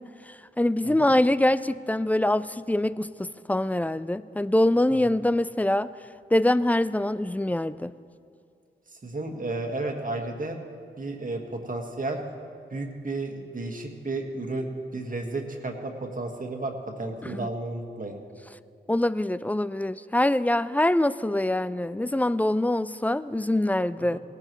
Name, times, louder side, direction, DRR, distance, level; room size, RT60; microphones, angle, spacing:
voice 1, 0.6-5.9 6.3-7.9 17.2-17.5 18.9-24.2, left 1 dB, 10° left, 16 dB, 0.3 m, -24 dB
voice 2, 9.0-10.6 11.0-12.2 12.7-18.2 24.1-24.2, right 2 dB, 45° right, 2 dB, 1.6 m, -33 dB
18.0 x 11.5 x 3.1 m, 2.3 s
cardioid pair, 40°, 19 cm